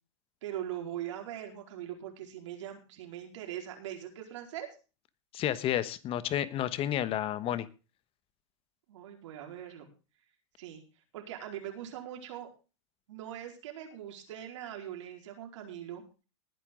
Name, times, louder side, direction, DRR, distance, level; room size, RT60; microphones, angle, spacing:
voice 1, 0.4-4.7 8.9-9.9 10.6-10.8 11.1-12.5 13.1-16.0, right 11 dB, 70° right, 3 dB, 4.6 m, -41 dB
voice 2, 5.3-7.7, left 11 dB, 35° left, 15 dB, 1.3 m, -31 dB
20.0 x 8.6 x 3.8 m, 0.33 s
hypercardioid pair, 105°, 16 cm